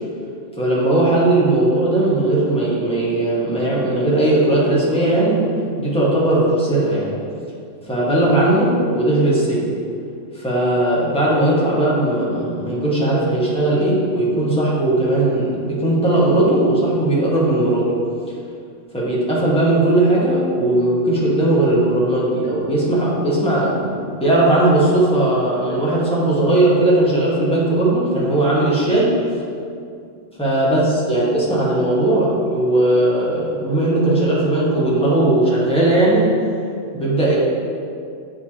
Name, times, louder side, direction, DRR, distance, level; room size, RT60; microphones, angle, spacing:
voice 1, 0.6-5.5 5.8-7.2 7.9-9.7 10.4-17.9 18.9-29.1 30.4-30.8 31.1-36.3 36.9-37.4, right 1 dB, 5° left, -7 dB, 1.3 m, -18 dB
9.1 x 5.1 x 2.9 m, 2.4 s
omnidirectional pair, 1.5 m